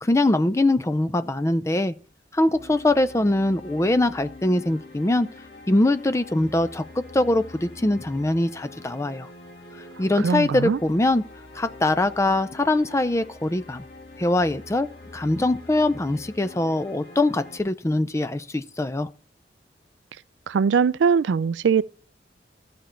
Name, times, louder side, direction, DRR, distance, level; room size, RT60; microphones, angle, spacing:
voice 1, 0.0-1.9 2.3-5.3 5.7-9.3 10.0-11.2 11.6-13.8 14.2-14.9 15.1-19.1, left 2 dB, 15° left, 0.4 m, -22 dB
sound 1, 2.5-17.6, left 2 dB, 80° left, 2.3 m, -45 dB
voice 2, 10.2-10.8 20.5-21.8, right 6 dB, 90° right, 0.4 m, -21 dB
13.5 x 5.2 x 4.4 m
head